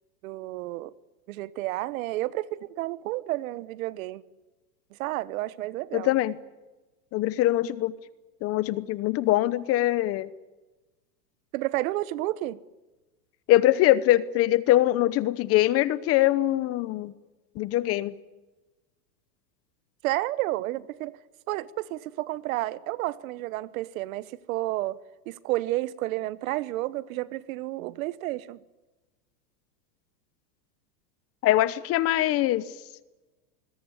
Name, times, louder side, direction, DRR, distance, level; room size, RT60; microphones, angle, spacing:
voice 1, 0.2-0.9 1.3-4.2 5.0-6.1 11.5-12.6 20.0-21.2 21.5-25.0 25.3-28.6, right 17 dB, 55° right, 1.2 m, -31 dB
voice 2, 5.9-6.3 7.1-7.9 8.4-10.3 13.5-17.1 17.6-18.1 31.4-32.6, left 15 dB, 30° left, 0.9 m, -23 dB
25.5 x 21.0 x 9.8 m
supercardioid pair, 145°, 49 cm